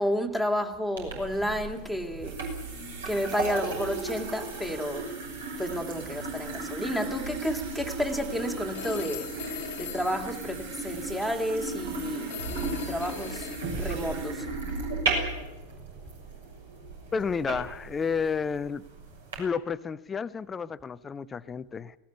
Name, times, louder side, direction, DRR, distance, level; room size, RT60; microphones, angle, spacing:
voice 1, 0.0-2.4 3.1-5.1 5.6-9.5 9.8-13.5 13.8-14.5, equal, 5° right, 2.1 m, -31 dB
sound 1, 1.0-19.4, right 3 dB, 65° right, 6.4 m, -35 dB
Telephone, 8.7-11.1 12.3-14.0, left 12 dB, 55° left, 1.5 m, -42 dB
voice 2, 17.1-18.8 19.4-22.0, left 6 dB, 20° left, 0.7 m, -31 dB
19.0 x 18.5 x 9.9 m
figure-of-eight pair, 90°, 0 cm